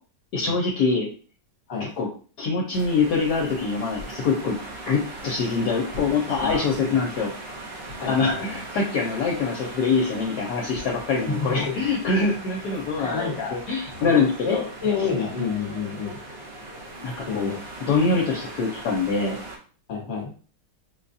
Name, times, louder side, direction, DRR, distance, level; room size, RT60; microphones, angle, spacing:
voice 1, 0.3-1.1 2.0-2.1 2.4-4.6 4.9-7.3 8.1-14.6 17.0-17.5 17.8-19.4, left 4 dB, 70° left, -1 dB, 1.2 m, -24 dB
sound 1, 2.7-19.6, right 1 dB, 45° right, 0.9 m, -39 dB
voice 2, 6.4-7.0 8.0-8.6 11.3-11.8 13.0-13.6 14.0-16.2 17.3-17.6 19.9-20.3, left 5 dB, 40° left, -2 dB, 1.4 m, -29 dB
5.3 x 2.3 x 2.6 m, 0.40 s
omnidirectional pair, 2.0 m